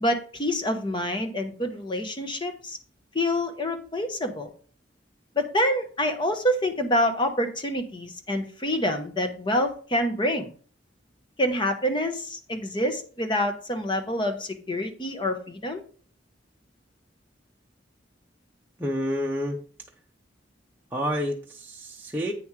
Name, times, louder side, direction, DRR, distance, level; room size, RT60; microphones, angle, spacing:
voice 1, 0.0-2.8 3.1-4.5 5.3-10.5 11.4-15.8, left 1 dB, 25° left, 6 dB, 1.0 m, -27 dB
voice 2, 18.8-19.6 20.9-22.3, equal, 10° right, -2 dB, 0.8 m, -29 dB
8.7 x 7.1 x 3.2 m, 0.42 s
head